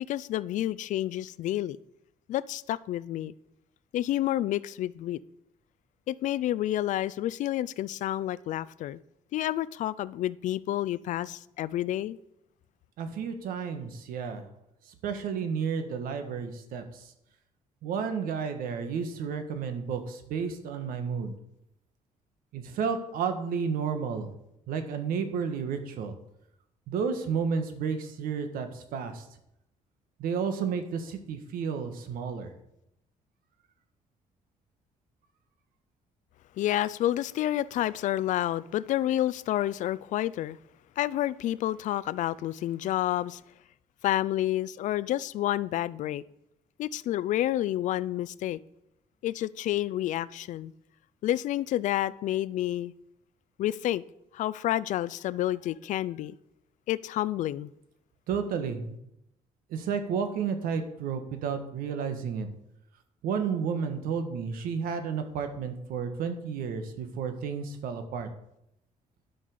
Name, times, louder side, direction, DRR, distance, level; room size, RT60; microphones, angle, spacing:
voice 1, 0.1-1.8 2.3-3.3 3.9-5.2 6.1-9.0 9.3-12.2 36.6-40.6 41.0-43.4 44.0-46.2 46.8-48.6 49.2-50.7 51.2-52.9 53.6-54.0 54.3-56.4 56.9-57.7, left 13 dB, 60° left, 0.4 m, -29 dB
voice 2, 13.0-14.4 15.0-17.1 17.8-21.3 22.5-24.3 24.7-26.2 26.9-29.2 30.2-32.5 58.3-59.0 59.7-62.5 63.2-68.3, right 6 dB, 90° right, 1.6 m, -32 dB
11.5 x 5.5 x 6.7 m
cardioid pair, 175°, 14 cm